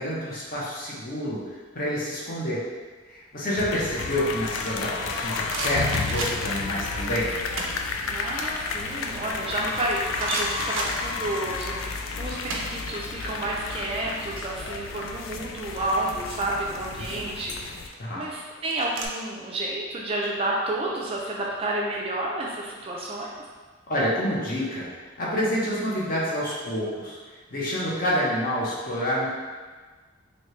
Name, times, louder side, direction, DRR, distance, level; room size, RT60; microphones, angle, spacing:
voice 1, 0.0-2.7 3.1-7.3 17.0-17.2 18.0-18.2 23.9-24.9 25.2-27.2 27.5-29.3, equal, 45° left, -6 dB, 0.8 m, -28 dB
sound 1, 3.5-17.9, left 4 dB, 85° left, 0.3 m, -32 dB
sound 2, 5.5-6.7 7.3-7.9 8.3-9.8 10.2-11.6 11.8-13.3 13.5-13.7 14.0-15.6 16.5-16.9 17.6-19.1, right 3 dB, 80° right, 0.5 m, -35 dB
voice 2, 8.1-17.6 18.1-23.3, right 1 dB, 30° right, -3 dB, 0.4 m, -30 dB
3.1 x 2.7 x 3.1 m, 1.4 s
head